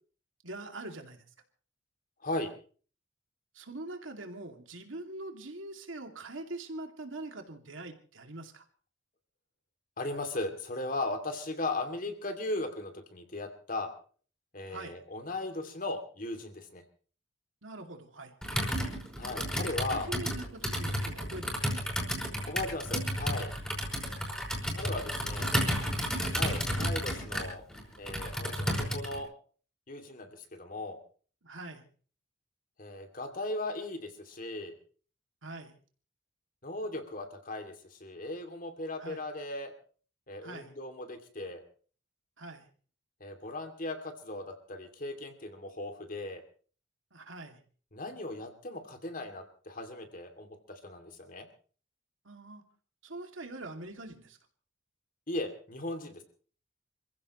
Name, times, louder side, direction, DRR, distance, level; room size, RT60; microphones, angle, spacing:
voice 1, 0.4-1.2 3.5-8.6 14.7-15.0 17.6-18.3 19.9-21.8 25.4-26.4 31.4-31.8 35.4-35.7 39.0-39.2 40.4-40.7 42.4-42.6 47.1-47.6 52.2-52.6 53.0-54.4, right 2 dB, 85° right, 5 dB, 2.5 m, -43 dB
voice 2, 10.0-13.9 14.5-16.8 19.2-20.1 22.5-23.5 24.7-25.6 26.3-27.6 28.0-29.3 29.9-31.0 32.8-34.7 36.6-39.7 40.3-41.6 43.2-46.4 47.9-51.5 55.3-56.2, left 2 dB, 45° left, 6 dB, 2.7 m, -37 dB
Computer keyboard, 18.4-29.2, equal, 5° left, 5.4 m, -32 dB
27.5 x 15.5 x 3.2 m, 0.41 s
head